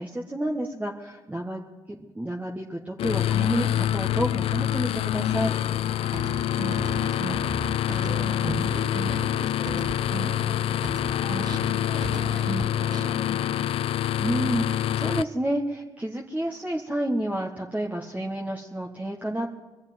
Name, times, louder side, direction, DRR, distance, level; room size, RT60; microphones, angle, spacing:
voice 1, 0.0-1.6 2.0-5.5 14.2-19.5, right 1 dB, 15° right, 0 dB, 1.5 m, -30 dB
sound 1, 3.0-15.2, left 11 dB, 75° left, 0.4 m, -26 dB
sound 2, 6.1-10.5 10.8-13.2, right 4 dB, 45° right, 1.3 m, -36 dB
voice 2, 6.6-7.5 7.9-11.3 11.6-14.0, equal, 5° left, 0 dB, 2.9 m, -42 dB
21.0 x 7.3 x 9.2 m, 1.2 s
supercardioid pair, 65°, 10 cm